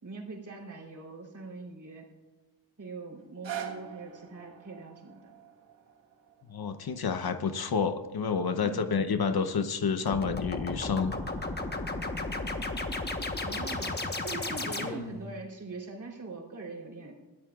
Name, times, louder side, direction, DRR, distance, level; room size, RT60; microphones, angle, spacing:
voice 1, 0.0-2.1 2.8-5.3 8.6-8.9 13.4-17.1, right 3 dB, 45° right, -2 dB, 3.6 m, -42 dB
sound 1, 3.2-9.3 9.9-10.0, right 9 dB, 75° right, 1.5 m, -45 dB
voice 2, 6.5-11.1, left 5 dB, 55° left, 9 dB, 0.8 m, -29 dB
sound 2, 10.1-15.3, left 2 dB, 25° left, 1.2 m, -34 dB
21.0 x 13.5 x 2.4 m, 1.2 s
cardioid pair, 85°, 43 cm